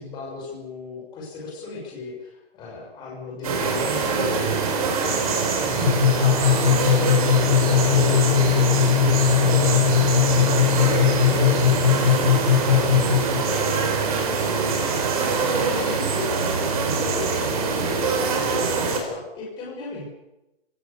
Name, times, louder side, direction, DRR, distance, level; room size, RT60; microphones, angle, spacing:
voice 1, 0.0-4.6 5.0-7.1 7.7-20.0, left 4 dB, 15° left, -2 dB, 6.4 m, -35 dB
sound 1, 3.4-19.0, right 5 dB, 35° right, 4.8 m, -24 dB
sound 2, 5.9-13.4, left 8 dB, 60° left, 1.7 m, -19 dB
30.0 x 17.5 x 7.0 m, 0.94 s
hypercardioid pair, 170°, 31 cm